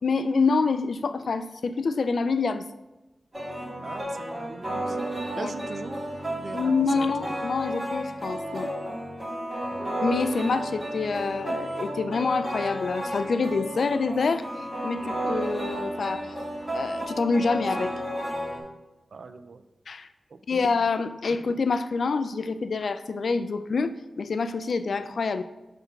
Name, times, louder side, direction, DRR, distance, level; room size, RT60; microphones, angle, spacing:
voice 1, 0.0-2.6 5.4-5.5 6.5-8.7 10.0-14.5 14.8-16.3 16.7-17.9 19.9-20.1 20.5-25.4, left 4 dB, 75° left, 11 dB, 0.3 m, -26 dB
sound 1, 3.3-18.6, right 1 dB, 30° right, 2.1 m, -32 dB
voice 2, 3.8-5.0 5.3-7.4 9.6-9.9 19.1-19.6 20.3-20.7 21.3-21.4, right 4 dB, 70° right, 10 dB, 0.4 m, -41 dB
5.7 x 3.5 x 5.5 m, 1.1 s
wide cardioid pair, 90°, 0 cm